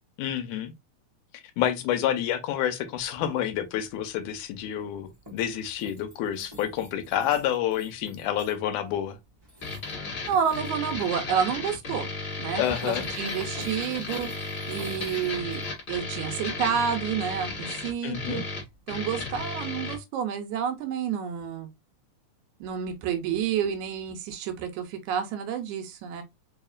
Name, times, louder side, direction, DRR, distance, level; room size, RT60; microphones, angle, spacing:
voice 1, 0.2-0.7 1.6-9.2 12.6-13.1 18.0-18.5, left 10 dB, 90° left, 2.2 m, -28 dB
sound 1, 3.0-19.4, right 1 dB, 35° right, 0.4 m, -51 dB
sound 2, 9.6-20.0, left 3 dB, 40° left, 1.7 m, -34 dB
voice 2, 10.3-12.1 12.4-14.3 14.7-15.6 15.9-18.4 18.9-21.7 22.6-26.2, right 8 dB, 80° right, 2.0 m, -29 dB
4.8 x 2.8 x 2.4 m
omnidirectional pair, 3.5 m